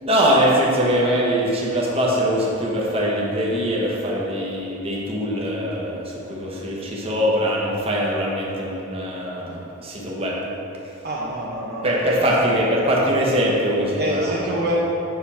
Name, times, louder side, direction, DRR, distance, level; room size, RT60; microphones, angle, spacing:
voice 1, 0.0-10.4 11.8-14.5, equal, 30° right, -4 dB, 1.1 m, -22 dB
voice 2, 11.0-12.2 14.0-14.8, equal, 50° right, -4 dB, 0.9 m, -26 dB
7.9 x 6.1 x 4.3 m, 3.0 s
head